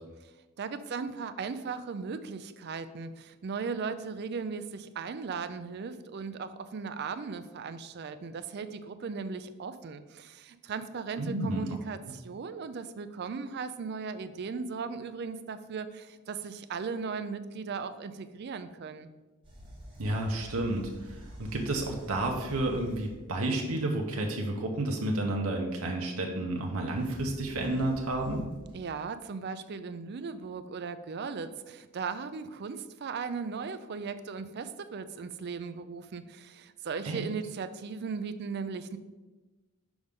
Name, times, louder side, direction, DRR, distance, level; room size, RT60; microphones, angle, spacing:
voice 1, 0.6-19.1 28.7-39.0, right 5 dB, 50° right, 11 dB, 0.4 m, -37 dB
voice 2, 11.2-11.7 20.0-28.4 37.0-37.2, right 1 dB, 90° right, 1 dB, 0.9 m, -31 dB
sound 1, 19.4-23.3 26.5-28.9, equal, 25° right, 1.9 m, -48 dB
6.2 x 5.1 x 3.6 m, 1.2 s
head